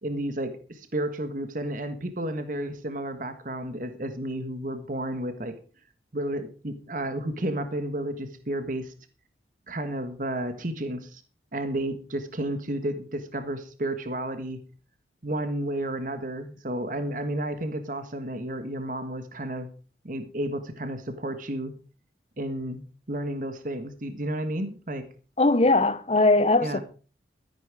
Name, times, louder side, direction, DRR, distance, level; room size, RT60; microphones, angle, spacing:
voice 1, 0.0-5.6 6.1-8.9 9.7-11.2 11.5-14.6 15.2-19.7 20.0-21.7 22.4-22.8 23.1-25.1 26.6-26.8, right 1 dB, 45° right, 1.5 m, -32 dB
voice 2, 25.4-26.8, left 2 dB, 35° left, 0.9 m, -20 dB
13.5 x 11.0 x 4.9 m
head